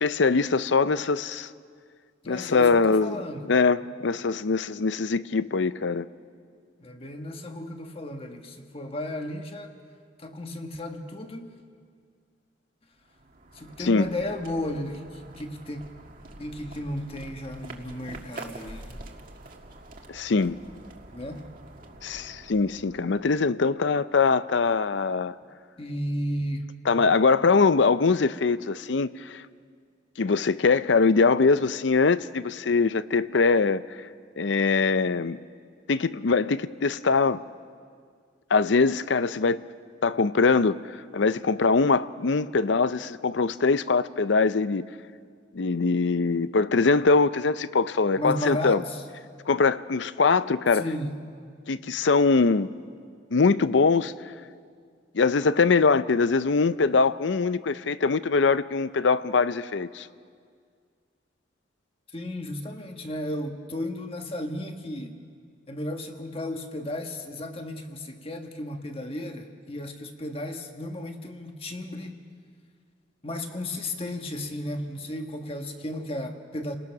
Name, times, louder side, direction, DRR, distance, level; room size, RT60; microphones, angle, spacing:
voice 1, 0.0-1.5 2.3-3.2 3.5-6.1 13.8-14.1 20.1-20.6 22.0-25.3 26.9-29.4 30.2-34.1 34.4-35.4 35.9-37.4 38.5-39.6 40.0-44.8 45.5-48.8 49.5-50.9 51.7-52.7 53.3-54.1 55.1-60.1, left 4 dB, 75° left, 0.6 m, -22 dB
voice 2, 2.2-3.5 6.8-9.7 10.2-11.6 13.5-15.8 16.4-19.0 21.1-21.5 25.8-26.7 48.2-49.0 50.7-51.1 62.1-65.2 65.7-72.2 73.2-76.8, left 1 dB, 30° left, 1.5 m, -34 dB
sound 1, 13.0-23.7, right 2 dB, 45° right, 1.8 m, -46 dB
29.5 x 19.5 x 6.0 m
head